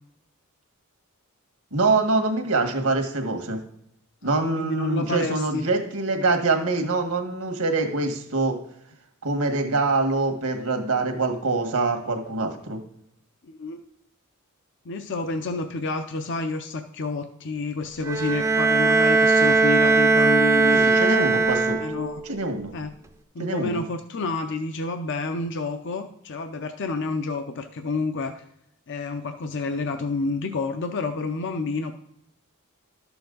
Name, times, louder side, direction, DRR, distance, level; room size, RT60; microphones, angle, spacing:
voice 1, 1.7-3.6 4.2-8.6 9.2-12.8 20.7-21.8 22.3-22.7 23.4-23.8, right 3 dB, 85° right, 4 dB, 1.6 m, -24 dB
voice 2, 4.2-5.7 13.4-13.8 14.9-20.8 21.3-21.4 21.8-22.2 22.7-22.9 23.3-28.4 28.9-31.9, left 3 dB, 55° left, 8 dB, 0.6 m, -29 dB
Bowed string instrument, 18.0-22.2, right 3 dB, 15° right, 0.5 m, -19 dB
12.0 x 7.1 x 3.9 m, 0.76 s
head